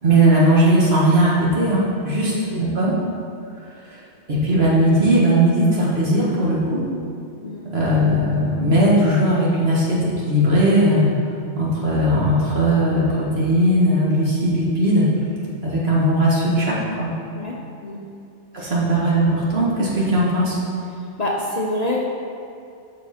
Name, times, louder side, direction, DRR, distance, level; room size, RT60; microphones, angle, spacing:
voice 1, 0.0-2.9 4.3-6.8 7.7-10.0 10.3-11.1 11.6-15.1 15.6-17.1 18.5-20.6, right 1 dB, 65° right, -6 dB, 1.9 m, -18 dB
voice 2, 2.2-2.7 7.4-7.6 17.4-18.0 18.6-18.7 20.9-22.0, left 1 dB, 40° left, -2 dB, 0.7 m, -27 dB
7.4 x 5.9 x 4.3 m, 2.5 s
omnidirectional pair, 1.2 m